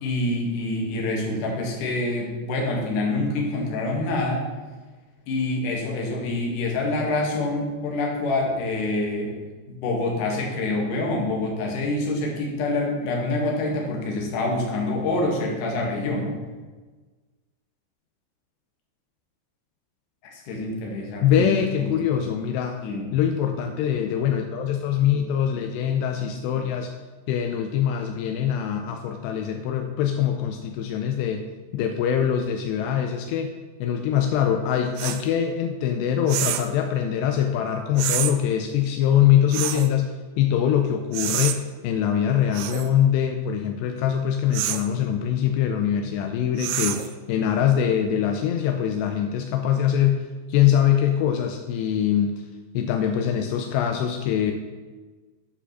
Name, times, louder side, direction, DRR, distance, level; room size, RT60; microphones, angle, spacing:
voice 1, 0.0-4.5 5.3-9.3 9.8-16.4 20.2-21.5 21.8-21.9 22.8-23.1, left 2 dB, 55° left, -1 dB, 2.7 m, -26 dB
voice 2, 21.2-22.8 23.1-26.9 27.3-31.5 31.7-33.5 33.8-52.4 52.7-54.5, left 9 dB, 85° left, 5 dB, 2.7 m, -23 dB
sound 1, 35.0-35.2 36.3-36.7 38.0-38.3 39.5-39.9 41.1-41.6 42.5-42.9 44.5-44.9 46.6-47.1, right 12 dB, 90° right, 2.8 m, -27 dB
8.9 x 5.0 x 6.7 m, 1.3 s
omnidirectional pair, 4.9 m